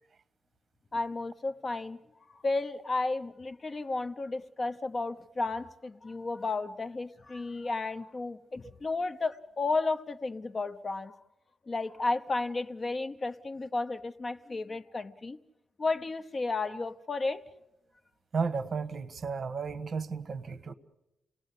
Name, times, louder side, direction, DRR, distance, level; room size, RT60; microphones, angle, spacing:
voice 1, 0.9-2.0 2.4-11.1 11.7-15.4 15.8-17.4, left 3 dB, 35° left, 0.8 m, -33 dB
voice 2, 18.3-20.7, right 5 dB, 45° right, 1.4 m, -33 dB
29.0 x 19.0 x 8.3 m
cardioid pair, 115°, 0 cm